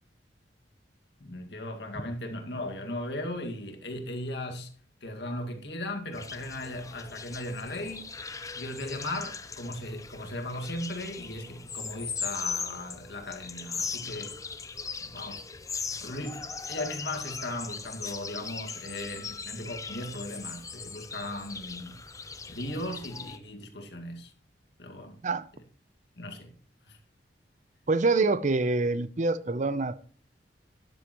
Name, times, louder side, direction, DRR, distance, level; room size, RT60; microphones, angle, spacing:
voice 1, 1.2-4.7 5.0-8.1 8.5-14.4 15.0-15.4 16.0-22.0 22.5-24.3 24.8-25.2 26.2-26.5 26.9-27.0, left 1 dB, 70° left, 2.1 m, -37 dB
sound 1, 6.1-23.4, left 5 dB, 20° left, 0.6 m, -39 dB
voice 2, 27.9-30.0, right 3 dB, 45° right, 0.7 m, -26 dB
12.5 x 10.0 x 3.1 m
head